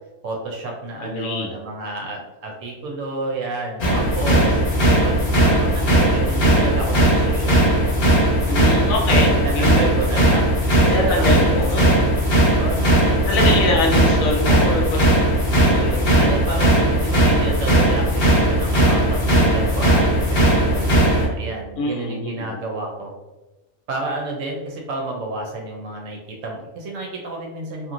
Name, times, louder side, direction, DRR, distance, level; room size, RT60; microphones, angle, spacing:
voice 1, 0.2-8.0 8.9-9.0 9.4-12.1 12.6-13.9 16.2-23.1 23.9-27.9, right 3 dB, 70° right, 0 dB, 0.8 m, -31 dB
voice 2, 1.0-1.5 8.5-9.9 10.9-12.0 13.3-16.3 16.6-17.0 21.8-22.6, left 2 dB, 70° left, 0 dB, 1.0 m, -24 dB
sound 1, 3.8-21.3, right 1 dB, 45° left, 0.9 m, -17 dB
2.9 x 2.4 x 2.4 m, 1.1 s
omnidirectional pair, 1.5 m